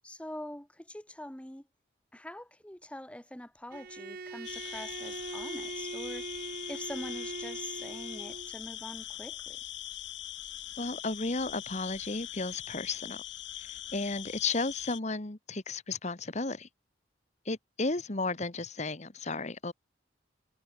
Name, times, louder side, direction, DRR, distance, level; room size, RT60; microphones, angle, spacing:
voice 1, 0.0-1.7 2.1-9.6, left 1 dB, 5° left, 1.4 m, -44 dB
Bowed string instrument, 3.7-8.5, right 3 dB, 55° right, 0.8 m, -41 dB
sound 1, 4.4-15.0, left 13 dB, 80° left, 1.4 m, -42 dB
voice 2, 10.8-13.2 13.6-16.7 17.4-19.7, left 3 dB, 40° left, 1.5 m, -34 dB
head